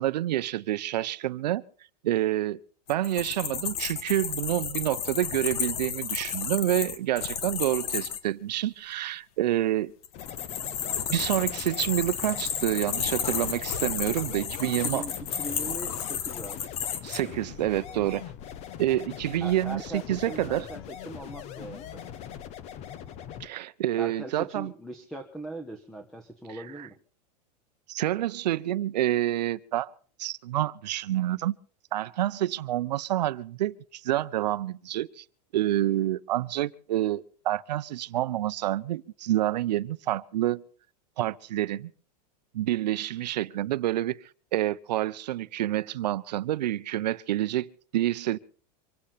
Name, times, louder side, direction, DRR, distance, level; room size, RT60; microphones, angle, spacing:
voice 1, 0.0-1.6 2.0-2.6 2.9-9.9 11.1-15.1 17.0-18.2 18.8-20.7 23.4-24.7 26.8-26.9 27.9-29.9 30.2-31.6 31.9-35.2 35.5-40.6 41.2-41.9 42.5-44.2 44.5-48.4, right 14 dB, 85° right, 0.8 m, -28 dB
sound 1, 2.9-8.2 10.0-17.2, left 8 dB, 60° left, 2.0 m, -32 dB
sound 2, 10.1-23.5, left 9 dB, 30° left, 1.1 m, -42 dB
voice 2, 14.8-16.6 19.4-22.1 24.0-27.0, right 1 dB, ahead, 1.3 m, -40 dB
25.5 x 8.6 x 5.8 m
supercardioid pair, 155°, 21 cm